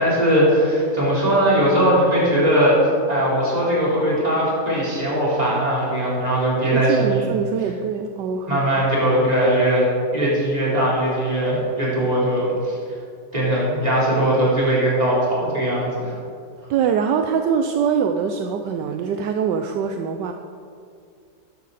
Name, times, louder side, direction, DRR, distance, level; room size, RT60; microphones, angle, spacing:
voice 1, 0.0-7.3 8.5-9.9 10.1-12.8 13.3-16.1, right 1 dB, 20° right, -7 dB, 3.8 m, -19 dB
voice 2, 6.7-8.6 16.7-20.3, right 7 dB, 75° right, 6 dB, 1.2 m, -23 dB
14.0 x 10.5 x 4.2 m, 2.3 s
omnidirectional pair, 2.0 m